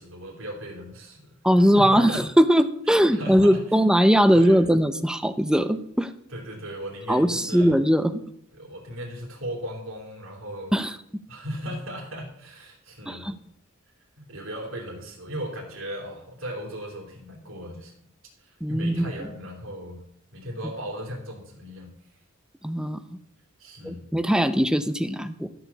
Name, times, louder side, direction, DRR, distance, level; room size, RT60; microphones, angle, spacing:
voice 1, 0.0-2.2 2.9-3.8 4.3-4.7 6.3-7.8 8.5-10.7 11.3-13.3 14.2-17.9 18.4-20.0 20.3-21.9 23.6-24.0, equal, 70° right, -2 dB, 3.2 m, -37 dB
voice 2, 1.4-6.1 7.1-8.2 10.7-10.9 13.1-13.3 18.6-19.1 22.6-23.2 23.8-25.5, equal, 5° right, 11 dB, 0.5 m, -20 dB
13.5 x 4.9 x 6.9 m, 0.71 s
head